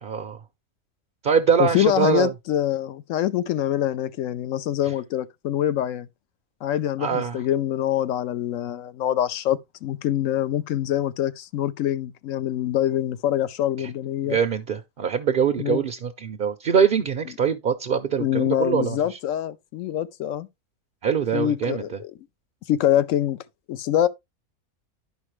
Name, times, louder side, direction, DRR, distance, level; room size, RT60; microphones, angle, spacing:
voice 1, 0.0-0.4 1.2-2.3 4.9-5.0 7.0-7.4 13.8-13.9 14.2-19.2 21.0-22.0, right 7 dB, 55° right, 0.6 m, -23 dB
voice 2, 1.6-6.1 6.6-14.4 15.6-15.8 18.2-20.5 21.3-22.1 22.7-23.4 23.7-24.1, left 11 dB, 70° left, 0.9 m, -25 dB
11.0 x 5.2 x 3.1 m
omnidirectional pair, 1.5 m